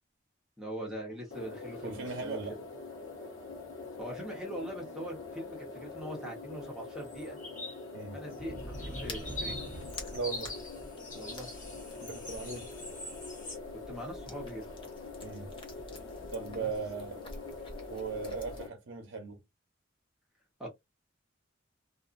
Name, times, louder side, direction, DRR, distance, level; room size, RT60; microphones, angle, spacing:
voice 1, 0.6-2.4 4.0-7.4 8.1-9.6 11.1-11.5 13.9-14.6 16.6-16.7 20.6-20.7, equal, 5° right, 1.0 m, -42 dB
sound 1, 1.3-18.7, left 3 dB, 70° left, 1.0 m, -45 dB
voice 2, 1.8-2.6 7.9-8.2 10.1-10.5 12.0-12.7 15.2-15.5 16.3-17.3 17.9-19.4, right 4 dB, 65° right, 0.6 m, -38 dB
sound 2, 7.1-7.8 8.2-13.6, left 1 dB, 40° left, 1.4 m, -43 dB
sound 3, 8.6-18.6, left 1 dB, 25° left, 0.8 m, -49 dB
2.5 x 2.5 x 2.4 m
head